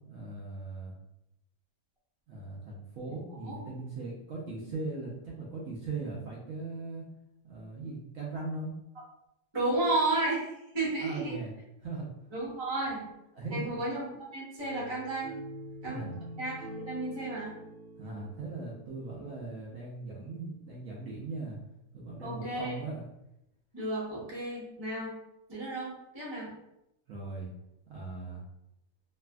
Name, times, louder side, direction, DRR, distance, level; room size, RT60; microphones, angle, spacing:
voice 1, 0.1-0.9 2.3-7.0 7.4-8.7 11.0-11.5 11.8-12.1 13.3-13.6 15.9-16.2 18.0-21.6 21.9-23.0 27.1-27.5 27.9-28.4, right 3 dB, 65° right, -4 dB, 0.8 m, -39 dB
voice 2, 9.5-10.4 10.7-11.4 12.3-13.0 13.5-14.1 14.3-15.3 15.8-16.0 16.4-17.5 22.2-22.7 23.7-25.1 25.5-26.5, right 2 dB, 25° right, -6 dB, 0.6 m, -32 dB
sound 1, 14.6-19.5, right 1 dB, 80° right, 1.3 m, -45 dB
3.2 x 2.5 x 2.2 m, 0.84 s
omnidirectional pair, 1.8 m